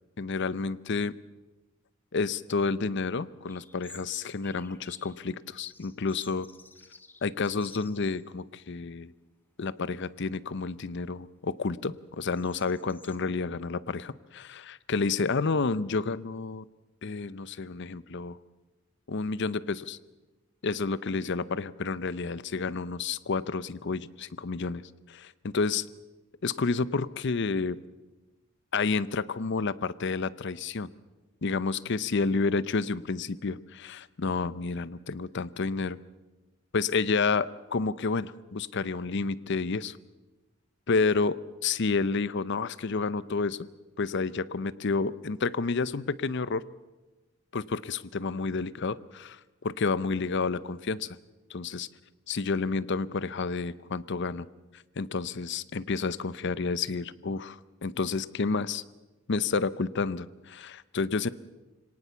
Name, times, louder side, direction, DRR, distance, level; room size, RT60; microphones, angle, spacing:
voice 1, 0.2-1.2 2.1-6.5 7.2-9.1 9.6-16.7 17.0-18.4 19.1-20.0 20.6-24.8 25.1-25.9 26.4-27.8 28.7-30.9 31.4-36.0 36.7-40.0 40.9-43.6 44.0-46.6 47.5-51.1 51.5-51.9 52.3-54.5 55.0-58.8 59.3-61.3, left 4 dB, 60° left, 17 dB, 0.7 m, -30 dB
sound 1, 3.5-5.2 5.6-8.3 8.6-8.7 9.5-9.9 10.3-13.2, left 3 dB, 10° left, 1.1 m, -53 dB
25.0 x 18.5 x 7.0 m, 1.1 s
head